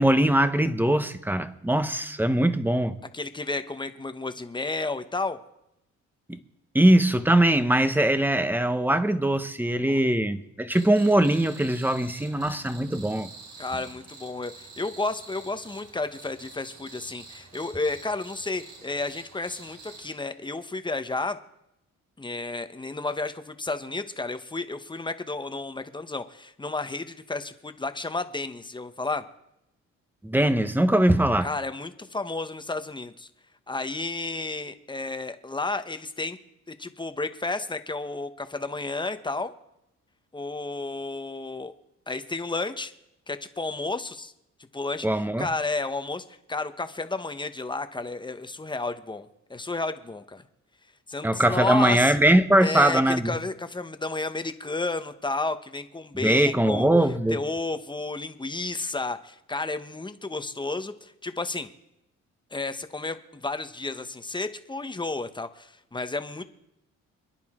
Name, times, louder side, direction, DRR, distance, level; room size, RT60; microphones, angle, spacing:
voice 1, 0.0-3.0 6.3-6.4 6.7-13.3 30.2-31.5 45.0-45.5 51.2-53.3 56.2-57.4, right 1 dB, 5° right, 1.1 m, -21 dB
voice 2, 3.1-5.4 9.9-10.0 13.6-21.4 22.2-29.2 31.4-33.3 33.7-36.4 36.7-39.5 40.3-41.7 42.1-42.9 43.3-44.3 44.7-45.1 45.4-50.4 51.1-52.1 52.6-56.9 57.3-61.7 62.5-66.4, left 3 dB, 15° left, 1.1 m, -32 dB
Cricket, 10.7-20.1, right 4 dB, 90° right, 5.6 m, -47 dB
27.5 x 10.5 x 3.8 m
cardioid pair, 90°, 30 cm